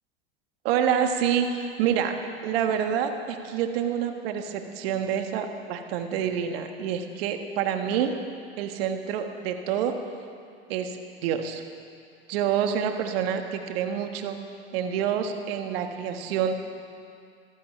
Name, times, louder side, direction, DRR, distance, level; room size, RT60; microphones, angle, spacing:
voice 1, 0.6-2.1 2.4-8.2 8.6-9.9 10.7-11.6 12.3-14.4 14.7-16.5, right 8 dB, 65° right, 6 dB, 1.5 m, -27 dB
14.5 x 14.5 x 5.6 m, 2.4 s
hypercardioid pair, 85°, 32 cm